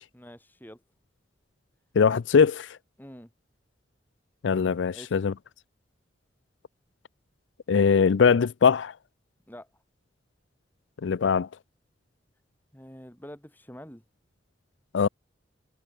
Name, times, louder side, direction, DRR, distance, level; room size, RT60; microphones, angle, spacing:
voice 1, 0.1-0.8 3.0-3.3 4.9-5.2 9.5-9.7 12.7-14.0, equal, 10° left, 4.8 m, -46 dB
voice 2, 2.0-2.8 4.4-5.3 7.7-8.9 11.0-11.5 14.9-15.1, left 6 dB, 85° left, 0.4 m, -21 dB
head